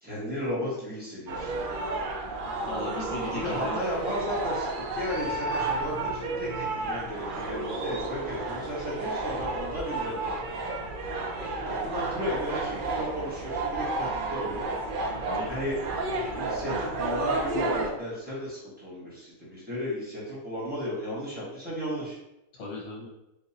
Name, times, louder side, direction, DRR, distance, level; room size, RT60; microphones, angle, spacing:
voice 1, 0.0-1.8 3.3-10.3 11.6-14.7 15.5-15.7 16.3-22.2, equal, 5° right, -8 dB, 1.2 m, -34 dB
sound 1, 1.3-17.9, right 2 dB, 70° right, 0.5 m, -32 dB
voice 2, 2.6-3.8 7.5-7.6 15.2-15.5 22.5-23.1, left 2 dB, 60° left, -4 dB, 1.1 m, -37 dB
3.8 x 2.7 x 2.7 m, 0.88 s
omnidirectional pair, 1.5 m